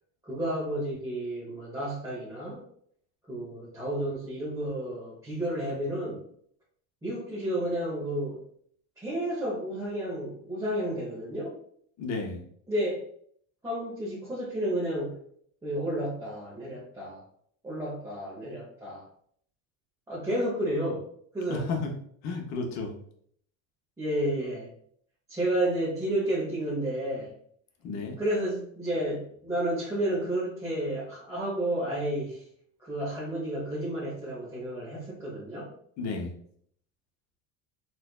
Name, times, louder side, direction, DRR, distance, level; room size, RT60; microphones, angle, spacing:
voice 1, 0.2-2.6 3.3-6.2 7.0-8.4 9.0-11.6 12.7-13.1 13.6-15.2 15.6-17.2 17.6-19.0 20.1-21.1 21.3-21.7 24.0-24.7 25.3-27.3 28.2-32.4 32.8-35.7, right 1 dB, 10° right, -8 dB, 1.0 m, -31 dB
voice 2, 12.0-12.4 21.5-21.9 22.2-22.9 27.8-28.2 36.0-36.3, left 3 dB, 45° left, 2 dB, 0.8 m, -32 dB
4.3 x 2.5 x 2.3 m, 0.64 s
cardioid pair, 135°, 39 cm